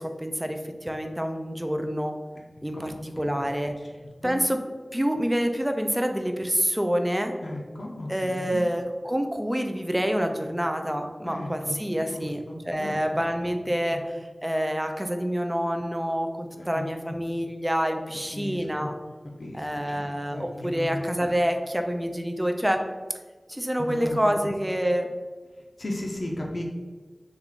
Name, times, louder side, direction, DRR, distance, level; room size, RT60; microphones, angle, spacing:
voice 1, 0.0-2.2 2.6-3.7 4.2-4.6 4.9-7.3 8.1-12.4 12.7-14.1 14.4-18.9 19.5-22.8 23.5-25.1, equal, 10° right, 5 dB, 0.4 m, -27 dB
voice 2, 2.7-3.0 4.2-4.4 7.4-8.6 11.2-13.0 13.9-14.0 16.6-17.1 18.3-18.9 19.4-21.0 23.8-24.5 25.8-26.6, left 1 dB, 65° left, -1 dB, 0.5 m, -36 dB
3.2 x 2.4 x 3.6 m, 1.4 s
wide cardioid pair, 70°, 0 cm